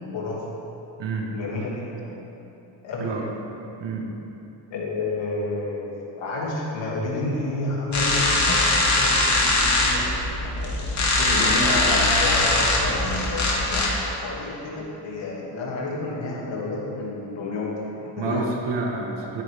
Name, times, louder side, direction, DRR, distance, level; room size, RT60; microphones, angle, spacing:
voice 1, 0.1-0.6 1.3-2.2 2.8-3.3 4.7-18.6, left 2 dB, 80° left, -4 dB, 2.7 m, -30 dB
voice 2, 1.0-1.3 3.0-3.3 3.8-4.1 8.3-8.5 18.2-19.4, right 4 dB, 75° right, 0 dB, 1.7 m, -29 dB
sound 1, 7.9-13.9, left 2 dB, 40° left, 2.5 m, -21 dB
13.0 x 10.5 x 3.6 m, 2.9 s
cardioid pair, 95°, 43 cm